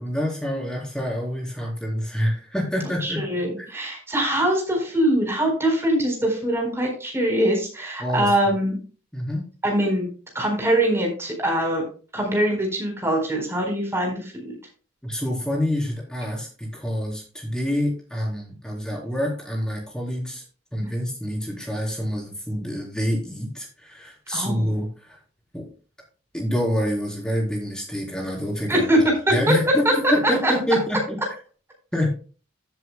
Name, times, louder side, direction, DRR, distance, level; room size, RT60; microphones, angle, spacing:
voice 1, 0.0-3.4 8.0-8.3 9.1-9.4 15.0-20.4 20.7-25.2 25.5-25.7 26.3-28.9 29.3-31.2 31.9-32.1, equal, 5° left, -2 dB, 3.9 m, -27 dB
voice 2, 3.0-8.8 9.6-10.1 10.3-11.8 12.1-14.6 20.8-20.9 24.3-24.7 28.7-29.7 30.0-30.1 30.4-30.5, right 1 dB, 15° right, 0 dB, 4.2 m, -23 dB
16.0 x 7.7 x 2.2 m, 0.38 s
head